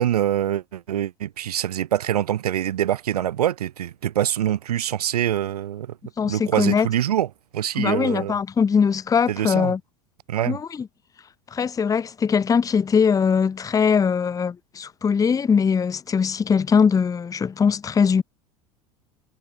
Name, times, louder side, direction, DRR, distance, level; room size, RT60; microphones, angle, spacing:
voice 1, 0.0-6.0 6.3-8.4 9.3-9.7 10.3-10.6, right 11 dB, 75° right, 0.4 m, -24 dB
voice 2, 6.2-6.9 7.8-9.8 10.5-10.6 11.5-18.2, left 6 dB, 15° left, 0.7 m, -21 dB
figure-of-eight pair, 75°, 20 cm